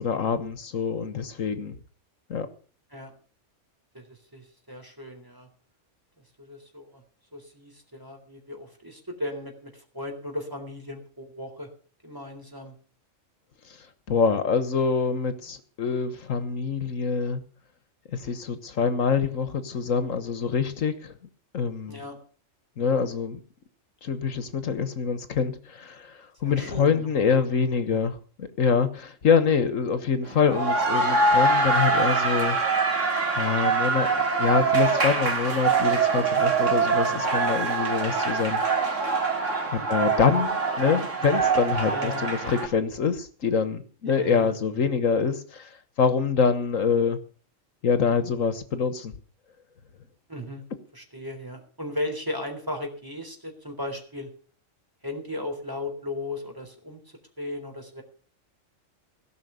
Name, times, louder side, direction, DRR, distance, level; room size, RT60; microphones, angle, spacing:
voice 1, 0.0-1.8 2.3-2.5 13.7-13.8 14.1-17.4 18.1-21.1 21.5-22.0 22.8-23.4 24.0-32.6 33.4-38.6 39.7-45.7 46.0-47.2 47.8-49.1, left 6 dB, 80° left, 11 dB, 1.7 m, -25 dB
voice 2, 3.9-5.5 6.4-7.0 7.3-11.7 12.0-12.7 21.8-22.2 26.4-27.4 41.9-42.2 44.0-44.6 50.3-50.6 50.9-54.3 55.0-57.0 57.4-58.0, left 1 dB, 15° right, 3 dB, 3.7 m, -36 dB
sound 1, 30.3-42.7, right 4 dB, 70° right, 2.7 m, -24 dB
17.5 x 6.1 x 9.4 m, 0.42 s
omnidirectional pair, 1.3 m